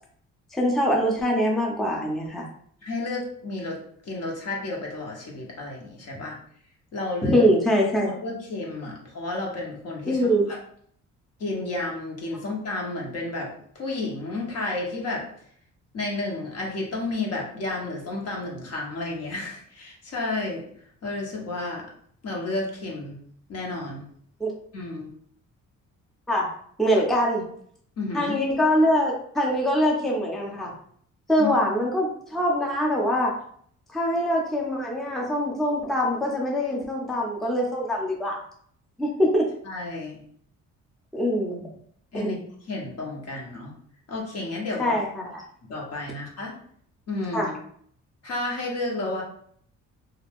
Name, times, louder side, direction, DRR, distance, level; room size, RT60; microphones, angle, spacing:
voice 1, 0.5-2.5 7.2-8.1 10.1-10.5 24.4-24.5 26.3-26.5 26.8-27.4 28.1-30.7 31.3-33.3 33.9-38.4 39.0-39.5 41.1-41.7 42.1-42.4 44.8-45.4 47.3-47.5, equal, ahead, -1 dB, 0.6 m, -23 dB
voice 2, 2.8-6.4 6.9-7.4 8.1-10.6 11.4-15.2 15.9-20.6 21.0-21.9 22.2-23.2 23.5-24.0 24.7-25.1 28.0-28.4 31.4-31.5 39.6-40.2 42.1-42.4 42.7-43.7 44.1-44.9 45.7-46.5 47.1-47.5 48.2-49.2, left 2 dB, 55° left, -1 dB, 1.0 m, -31 dB
2.4 x 2.2 x 3.4 m, 0.62 s
cardioid pair, 90°, 30 cm